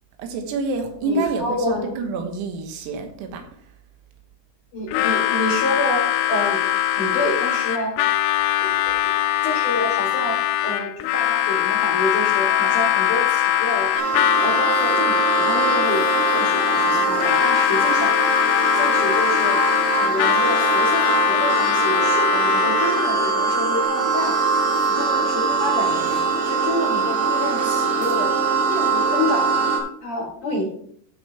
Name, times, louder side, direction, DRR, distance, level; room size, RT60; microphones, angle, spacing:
voice 1, 0.2-3.4, right 3 dB, 85° right, 4 dB, 4.0 m, -27 dB
voice 2, 1.0-1.9 4.7-6.6 7.0-7.9 8.6-8.9 9.4-14.1 14.4-16.1 16.3-18.1 18.7-19.6 19.9-24.5 24.9-25.9 26.3-28.3 28.7-29.7 30.0-30.7, left 1 dB, 50° left, -2 dB, 3.0 m, -28 dB
Harmonica, 4.9-23.2, left 13 dB, 85° left, 3.0 m, -21 dB
sound 1, 12.5-23.9, right 4 dB, 70° right, 5.3 m, -41 dB
sound 2, 14.0-29.8, right 4 dB, 50° right, 3.1 m, -22 dB
15.5 x 6.5 x 3.4 m, 0.64 s
omnidirectional pair, 5.8 m